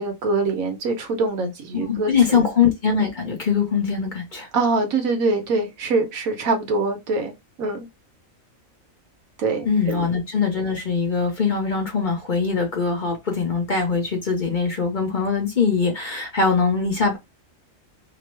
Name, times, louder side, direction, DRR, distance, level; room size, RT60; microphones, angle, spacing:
voice 1, 0.0-2.4 4.5-7.3 7.6-7.8 9.4-10.1, right 3 dB, 85° right, 1.3 m, -24 dB
voice 2, 1.7-4.5 9.7-17.2, left 5 dB, 45° left, 0.8 m, -22 dB
2.9 x 2.0 x 3.2 m
omnidirectional pair, 1.4 m